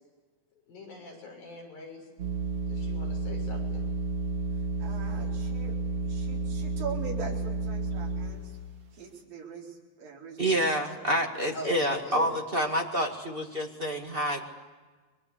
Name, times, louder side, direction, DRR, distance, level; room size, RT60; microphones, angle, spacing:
voice 1, 0.7-2.1 2.7-3.8 11.5-12.3, left 2 dB, 80° left, 1 dB, 8.6 m, -42 dB
sound 1, 2.2-8.7, right 3 dB, 50° right, 3.5 m, -31 dB
voice 2, 4.8-5.8 6.0-8.6 8.9-10.6 11.0-11.2 12.1-12.3, right 5 dB, 80° right, -3 dB, 6.2 m, -41 dB
voice 3, 10.4-14.5, equal, 25° right, 2 dB, 1.3 m, -28 dB
28.5 x 23.5 x 8.4 m, 1.3 s
omnidirectional pair, 4.0 m